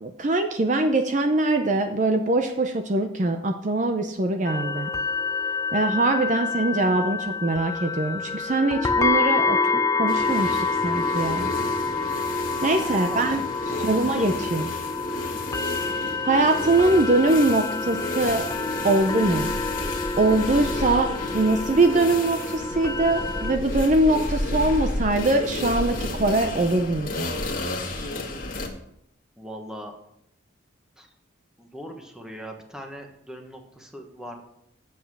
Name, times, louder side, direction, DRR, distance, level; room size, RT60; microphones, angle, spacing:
voice 1, 0.0-4.9 5.7-11.5 12.6-13.4 13.8-14.7 15.8-18.5 18.8-19.6 20.2-27.3, right 2 dB, 40° right, 6 dB, 0.6 m, -23 dB
sound 1, 4.5-23.6, left 4 dB, 15° left, 0.4 m, -27 dB
sound 2, 10.1-28.7, left 2 dB, 45° left, 1.6 m, -32 dB
voice 2, 12.9-13.4 13.7-14.2 29.4-29.9 31.0-31.1 31.6-34.4, equal, 5° right, 2 dB, 1.2 m, -40 dB
8.0 x 7.4 x 6.0 m, 0.76 s
head